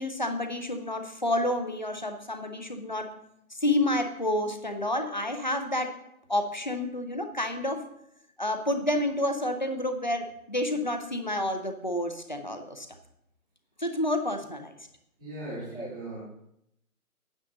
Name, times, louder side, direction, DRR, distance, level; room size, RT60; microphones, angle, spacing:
voice 1, 0.0-3.1 3.5-5.9 6.3-7.8 8.4-12.9 13.8-14.7 15.8-15.9, left 1 dB, 30° left, 6 dB, 0.6 m, -29 dB
voice 2, 15.2-16.2, right 2 dB, 5° right, -11 dB, 0.8 m, -38 dB
9.7 x 3.9 x 6.2 m, 0.77 s
figure-of-eight pair, 160°, 44 cm